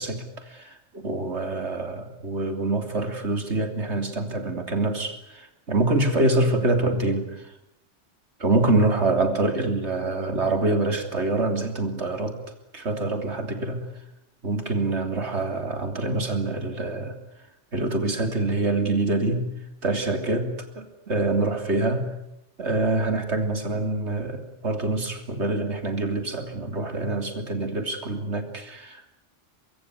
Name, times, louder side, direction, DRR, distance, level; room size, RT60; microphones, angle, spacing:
voice 1, 0.0-7.5 8.4-12.4 12.7-13.9 14.4-17.2 17.7-19.5 19.8-22.1 22.6-29.1, right 2 dB, 70° right, 6 dB, 3.6 m, -25 dB
24.0 x 23.5 x 9.5 m, 0.84 s
omnidirectional pair, 1.2 m